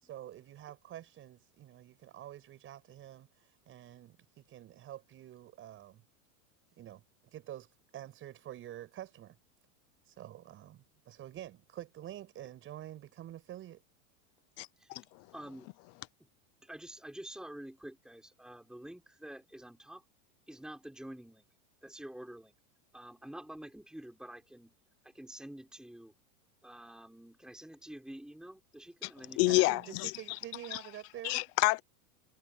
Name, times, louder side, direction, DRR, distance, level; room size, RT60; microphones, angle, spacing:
voice 1, 0.0-6.0 6.8-9.4 10.0-13.8 29.4-31.4, right 12 dB, 30° right, 6.0 m, -48 dB
voice 2, 14.6-15.0 29.4-30.1 30.7-30.8 31.2-31.8, left 23 dB, 35° left, 0.9 m, -28 dB
voice 3, 15.3-15.7 16.2-16.3 16.6-20.0 20.5-21.5 21.8-22.6 22.9-24.7 25.0-26.1 26.6-29.8, right 1 dB, ahead, 6.4 m, -48 dB
supercardioid pair, 155°, 44 cm